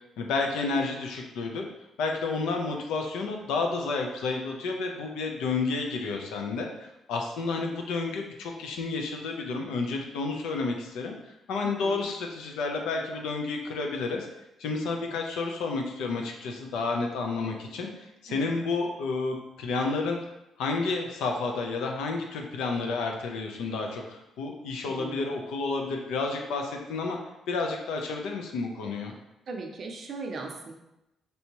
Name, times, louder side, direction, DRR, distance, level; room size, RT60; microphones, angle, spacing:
voice 1, 0.2-1.7 2.0-6.7 7.1-11.1 11.5-14.3 14.6-20.2 20.6-27.2 27.5-29.1, left 3 dB, 90° left, 2 dB, 0.5 m, -30 dB
voice 2, 11.6-12.1 15.0-15.1 18.3-18.6 24.9-25.3 29.5-30.7, right 3 dB, 55° right, 2 dB, 0.5 m, -39 dB
3.4 x 2.7 x 2.9 m, 0.91 s
cardioid pair, 90°, 0 cm